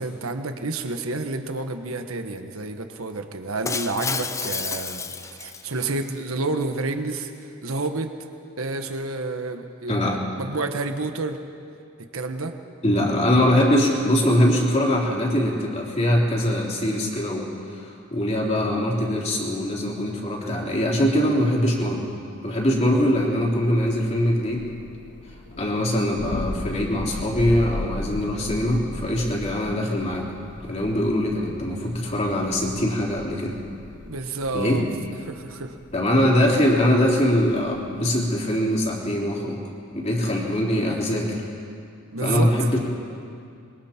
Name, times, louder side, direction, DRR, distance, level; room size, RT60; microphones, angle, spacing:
voice 1, 0.0-5.1 5.4-7.3 7.6-8.1 8.6-11.4 12.1-12.5 34.0-34.8 35.2-35.8 42.1-42.5, right 3 dB, 85° right, 6 dB, 1.3 m, -29 dB
Shatter, 3.6-6.0, left 4 dB, 15° left, 0.5 m, -30 dB
voice 2, 9.9-10.2 12.8-22.1 22.4-24.7 25.6-30.3 30.6-33.6 34.5-34.9 35.9-39.6 39.9-41.4 42.2-42.8, left 1 dB, 30° left, -2 dB, 3.3 m, -22 dB
Thunder, 22.5-38.3, left 1 dB, 55° left, 1.0 m, -38 dB
26.0 x 22.5 x 4.4 m, 2.4 s
head